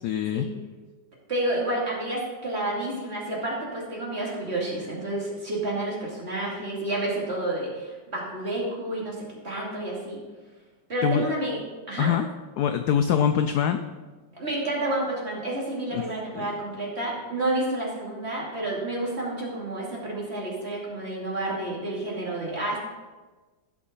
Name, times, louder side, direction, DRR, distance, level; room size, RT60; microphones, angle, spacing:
voice 1, 0.0-0.4 11.0-11.3 12.0-12.3 12.6-13.8 15.9-16.0 16.3-16.5, left 8 dB, 75° left, 8 dB, 0.9 m, -23 dB
voice 2, 1.3-10.2 10.9-11.6 11.9-12.1 14.3-22.8, right 1 dB, 30° right, -5 dB, 3.0 m, -30 dB
16.0 x 6.2 x 4.0 m, 1.3 s
omnidirectional pair, 2.1 m